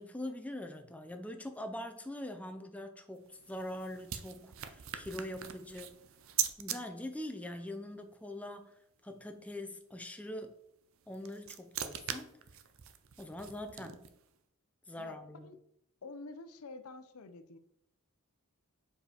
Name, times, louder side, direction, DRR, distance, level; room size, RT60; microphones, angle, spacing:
voice 1, 0.0-6.0 6.6-8.8 9.0-10.5 11.1-12.3 13.2-14.1 14.9-15.5, left 1 dB, 5° left, 6 dB, 0.5 m, -43 dB
sound 1, 3.1-6.8 10.9-14.3, right 10 dB, 65° right, 0.6 m, -41 dB
voice 2, 16.0-17.6, left 3 dB, 75° left, 9 dB, 0.6 m, -48 dB
5.0 x 4.8 x 4.9 m, 0.76 s
head